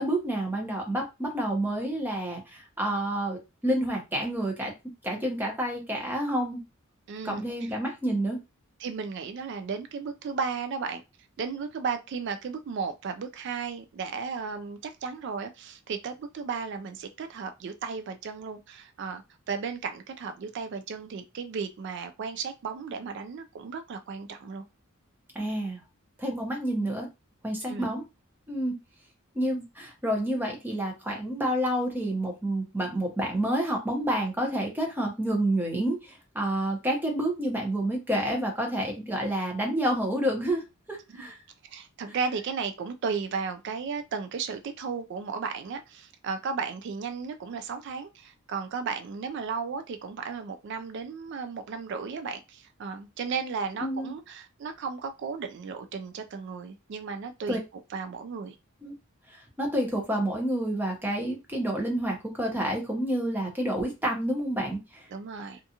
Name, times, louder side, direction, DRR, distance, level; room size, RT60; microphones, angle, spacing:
voice 1, 0.0-3.4 3.6-4.7 5.0-6.6 7.2-8.4 25.3-25.8 26.2-27.1 27.4-28.0 28.5-28.8 29.3-40.6 40.9-41.4 53.8-54.1 57.5-57.6 58.8-58.9 59.6-65.0, right 1 dB, 10° right, 0.7 m, -29 dB
voice 2, 7.1-7.7 8.8-11.0 11.4-19.2 19.5-24.6 27.7-28.0 41.1-41.3 41.7-57.6 57.9-58.6 65.1-65.6, right 5 dB, 55° right, 0.3 m, -34 dB
2.5 x 2.3 x 2.7 m
head